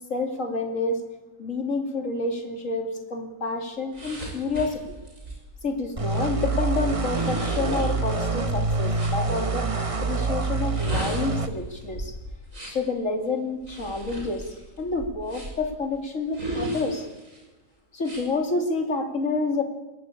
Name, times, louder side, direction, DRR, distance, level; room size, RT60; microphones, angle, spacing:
voice 1, 0.1-1.0 1.4-4.8 5.6-12.1 12.7-14.5 14.8-17.1 17.9-19.6, left 3 dB, 45° left, 4 dB, 3.2 m, -28 dB
sound 1, 3.9-9.2 10.5-12.9 13.6-15.7 16.3-17.4 18.0-18.2, right 1 dB, 45° right, 6.7 m, -36 dB
sound 2, 6.0-11.5, right 3 dB, 25° right, 1.0 m, -26 dB
21.0 x 17.5 x 8.6 m, 1.1 s
omnidirectional pair, 1.8 m